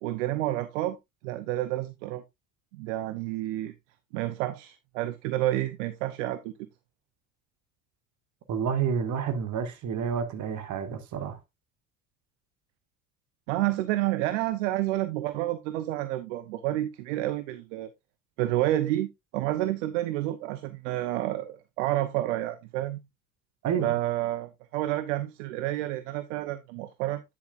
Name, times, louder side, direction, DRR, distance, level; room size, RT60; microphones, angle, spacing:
voice 1, 0.0-1.0 1.2-2.2 2.7-3.7 4.1-6.5 13.5-17.9 18.4-23.0 23.8-27.2, right 15 dB, 70° right, 0.8 m, -29 dB
voice 2, 8.5-11.4 23.6-23.9, right 7 dB, 50° right, 1.9 m, -29 dB
9.6 x 7.3 x 2.5 m
hypercardioid pair, 65°, 38 cm